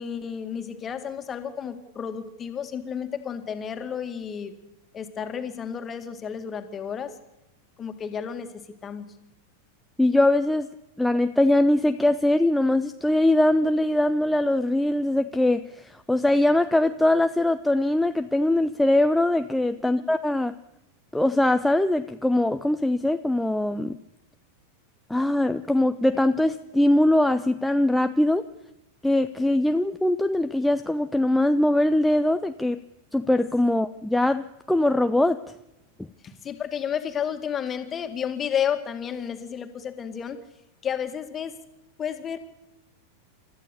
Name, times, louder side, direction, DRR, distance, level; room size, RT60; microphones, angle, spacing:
voice 1, 0.0-4.5 4.9-7.1 7.8-9.1 36.2-40.4 40.8-41.6 42.0-42.4, left 8 dB, 25° left, 8 dB, 2.2 m, -31 dB
voice 2, 10.0-10.7 11.0-20.5 21.1-24.0 25.1-28.5 29.0-32.8 33.1-35.4, left 1 dB, 5° left, 8 dB, 0.7 m, -22 dB
28.5 x 14.0 x 6.9 m, 0.92 s
figure-of-eight pair, 90°, 0 cm